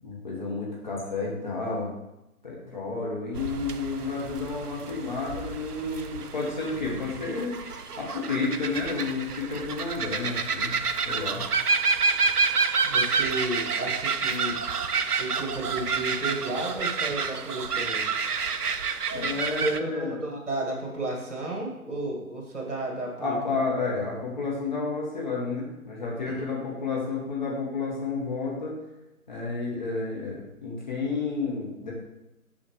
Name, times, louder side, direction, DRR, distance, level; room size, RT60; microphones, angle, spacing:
voice 1, 0.0-1.9 2.4-10.8 11.0-11.6 19.1-20.1 23.2-28.8 29.3-31.9, left 3 dB, 30° left, -4 dB, 1.3 m, -31 dB
sound 1, 3.3-19.8, right 5 dB, 90° right, 0.6 m, -29 dB
voice 2, 12.8-14.6 15.2-18.1 19.6-23.4 26.3-26.4, right 2 dB, 50° right, -1 dB, 1.9 m, -33 dB
6.2 x 6.1 x 3.2 m, 0.93 s
figure-of-eight pair, 150°, 44 cm